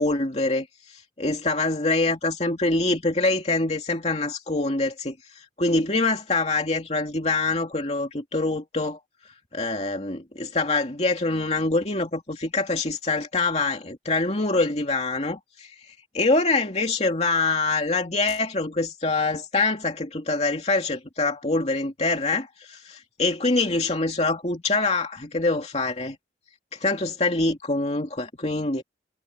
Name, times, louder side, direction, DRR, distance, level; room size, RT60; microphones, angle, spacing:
voice 1, 0.0-9.0 9.5-26.2 26.7-28.8, left 3 dB, 35° left, 2.6 m, -25 dB
head